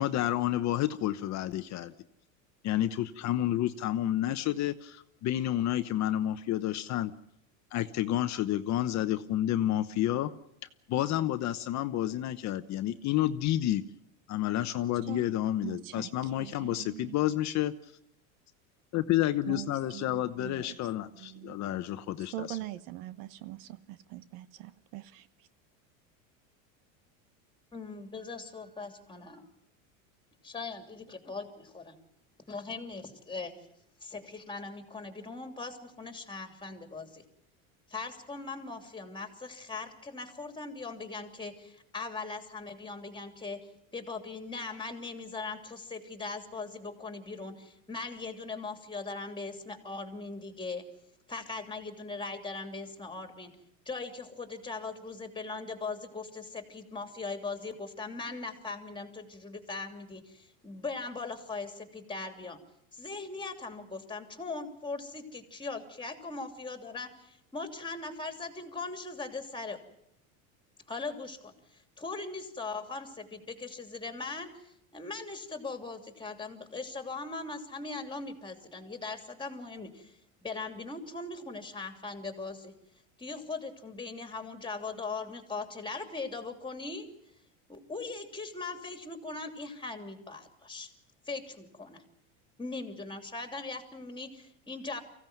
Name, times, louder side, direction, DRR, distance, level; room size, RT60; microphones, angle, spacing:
voice 1, 0.0-1.9 2.6-7.1 7.7-10.3 10.9-13.8 14.3-17.7 18.9-22.6, left 13 dB, 40° left, 10 dB, 1.0 m, -30 dB
voice 2, 15.6-16.1 16.4-17.2 19.5-20.8 21.2-21.6 22.3-25.3, right 15 dB, 65° right, 15 dB, 1.2 m, -42 dB
voice 3, 27.7-29.4 30.4-32.0 32.5-33.6 34.0-37.2 37.9-50.8 51.3-53.5 53.8-62.6 62.9-69.8 70.9-82.7 83.2-87.1 87.7-90.9 91.3-92.0 92.6-95.0, left 3 dB, 10° left, 6 dB, 3.0 m, -40 dB
24.0 x 16.0 x 9.3 m, 0.79 s
supercardioid pair, 125°, 41 cm